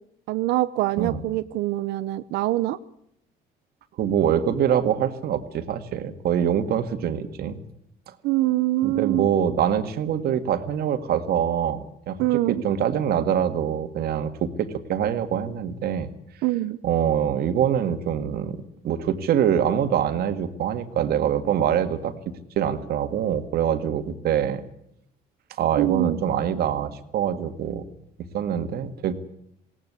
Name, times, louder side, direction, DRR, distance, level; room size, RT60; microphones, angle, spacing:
voice 1, 0.3-2.8 8.2-9.3 12.2-12.6 16.4-16.8 25.8-26.2, right 16 dB, 90° right, 11 dB, 0.8 m, -24 dB
voice 2, 4.0-7.6 8.8-16.1 16.8-18.6 18.8-22.1 22.6-24.6 25.6-27.8 28.3-29.1, right 9 dB, 65° right, 9 dB, 2.0 m, -24 dB
20.5 x 18.0 x 8.3 m, 0.75 s
cardioid pair, 110°, 17 cm